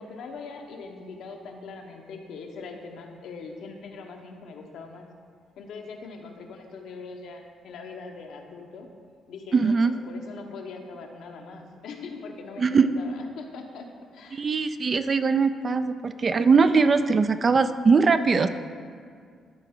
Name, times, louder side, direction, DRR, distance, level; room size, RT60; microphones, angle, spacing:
voice 1, 0.0-5.0 5.6-8.9 9.3-13.9 14.1-14.5, left 4 dB, 80° left, 3 dB, 0.9 m, -41 dB
voice 2, 9.5-9.9 12.6-12.9 14.3-18.5, right 4 dB, 40° right, 10 dB, 0.3 m, -21 dB
13.0 x 4.7 x 3.7 m, 2.1 s
cardioid pair, 90°, 0 cm